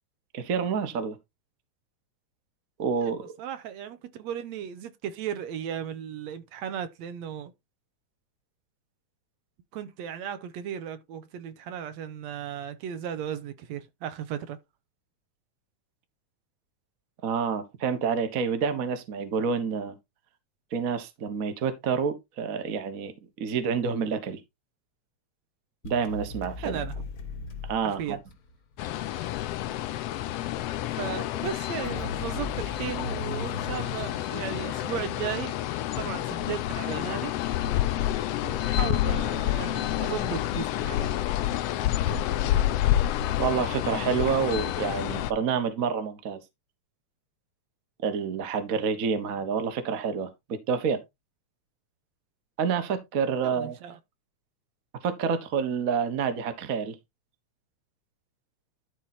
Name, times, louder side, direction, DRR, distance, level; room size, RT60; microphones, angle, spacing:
voice 1, 0.3-1.2 2.8-3.3 17.2-20.0 20.7-23.1 23.4-24.4 25.8-26.8 27.7-28.2 43.4-46.4 48.0-51.0 52.6-53.8 55.0-57.0, right 6 dB, 45° right, 1.2 m, -28 dB
voice 2, 3.0-7.5 9.7-14.6 26.6-27.0 27.8-28.2 29.0-29.4 30.9-35.6 36.0-37.3 38.4-41.1 53.4-54.0, right 9 dB, 75° right, 2.1 m, -36 dB
sound 1, 25.8-28.8 31.8-35.3, left 2 dB, 45° left, 1.3 m, -38 dB
sound 2, 28.8-45.3, left 13 dB, 75° left, 1.6 m, -29 dB
12.0 x 4.1 x 4.2 m
omnidirectional pair, 3.3 m